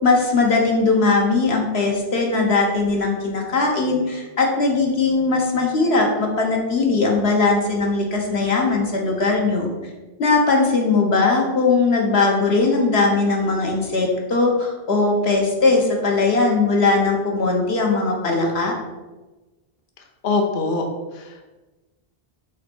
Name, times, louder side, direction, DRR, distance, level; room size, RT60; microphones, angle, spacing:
voice 1, 0.0-9.7 10.2-18.7, left 3 dB, 90° left, 0 dB, 1.6 m, -19 dB
voice 2, 20.2-20.9 21.1-21.5, left 3 dB, 60° left, 3 dB, 1.0 m, -23 dB
5.7 x 4.2 x 6.3 m, 1.2 s
omnidirectional pair, 1.0 m